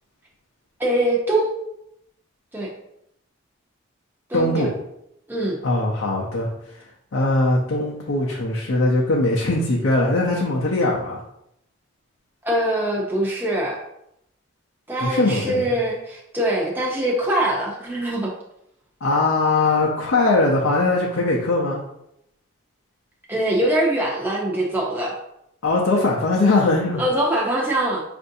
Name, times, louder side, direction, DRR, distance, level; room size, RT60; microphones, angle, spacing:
voice 1, 0.8-1.5 2.5-2.7 4.3-4.7 5.3-5.6 12.4-13.8 14.9-18.3 23.3-25.1 27.0-28.0, right 1 dB, 10° right, -3 dB, 0.5 m, -23 dB
voice 2, 4.3-4.7 5.6-6.8 7.1-11.2 15.0-15.7 19.0-21.8 25.6-27.0, left 2 dB, 70° left, -3 dB, 0.6 m, -20 dB
5.4 x 2.6 x 2.6 m, 0.79 s
head